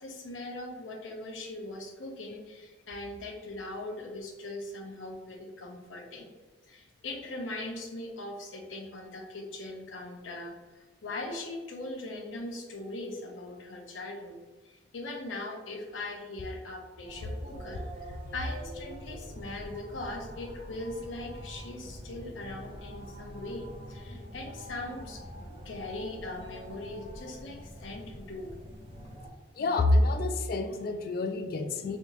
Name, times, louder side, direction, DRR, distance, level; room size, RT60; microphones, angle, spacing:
voice 1, 0.0-6.3 6.7-25.2 25.6-28.5, left 2 dB, 80° left, 2 dB, 0.7 m, -40 dB
sound 1, 17.0-29.3, equal, 30° right, 1.0 m, -45 dB
voice 2, 29.6-32.0, left 2 dB, 50° left, 6 dB, 0.3 m, -27 dB
3.3 x 2.8 x 2.8 m, 1.3 s
head